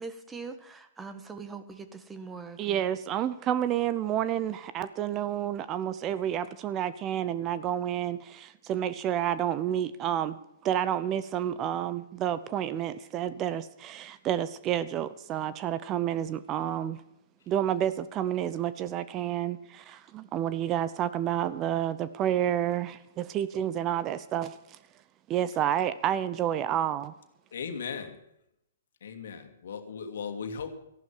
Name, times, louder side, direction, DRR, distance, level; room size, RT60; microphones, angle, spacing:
voice 1, 0.0-2.9, right 4 dB, 10° right, 1.4 m, -42 dB
voice 2, 2.6-17.0 17.5-24.8 25.3-27.1, right 10 dB, 30° right, 0.8 m, -30 dB
voice 3, 27.5-28.2 29.0-30.7, left 6 dB, 65° left, 2.3 m, -37 dB
14.5 x 11.5 x 7.3 m
hypercardioid pair, 125°, 0 cm